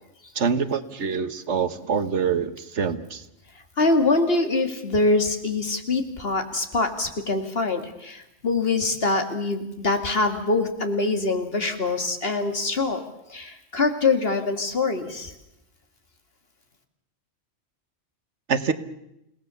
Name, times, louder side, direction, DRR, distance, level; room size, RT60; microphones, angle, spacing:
voice 1, 0.3-3.2 18.5-18.7, right 6 dB, 75° right, 12 dB, 1.5 m, -25 dB
voice 2, 3.8-13.0 13.3-15.3, left 3 dB, 55° left, 6 dB, 2.5 m, -24 dB
30.0 x 18.0 x 7.0 m, 0.85 s
omnidirectional pair, 1.2 m